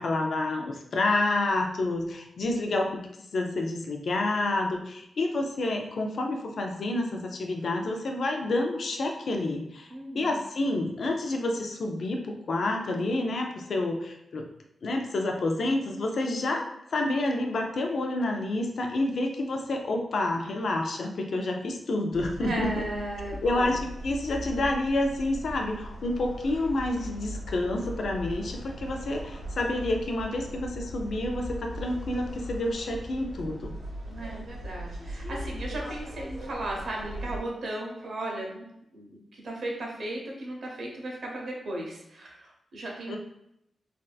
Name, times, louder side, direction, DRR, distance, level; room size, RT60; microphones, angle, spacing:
voice 1, 0.0-3.1 3.3-14.4 14.8-16.6 16.9-22.8 23.4-33.7 43.1-43.2, left 2 dB, 60° left, 2 dB, 0.4 m, -29 dB
voice 2, 9.9-10.4 22.4-23.8 34.1-43.2, right 1 dB, 65° right, -1 dB, 0.8 m, -36 dB
sound 1, 22.1-37.4, equal, 90° right, 1.4 m, -39 dB
3.4 x 2.6 x 2.3 m, 0.80 s
wide cardioid pair, 125°, 0 cm